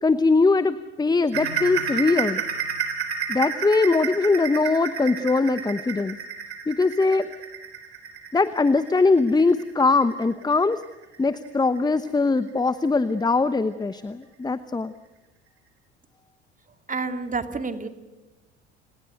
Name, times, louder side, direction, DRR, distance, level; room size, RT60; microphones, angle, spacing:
voice 1, 0.0-2.4 3.3-6.2 6.7-7.3 8.3-10.8 11.2-14.9, left 3 dB, 15° left, 14 dB, 1.0 m, -21 dB
sound 1, 1.3-12.6 13.0-13.2 13.6-13.7 14.2-14.3, right 7 dB, 85° right, 4.0 m, -31 dB
voice 2, 16.9-17.9, right 4 dB, 25° right, 8 dB, 2.6 m, -29 dB
30.0 x 19.5 x 6.6 m, 1.1 s
hypercardioid pair, 65°, 32 cm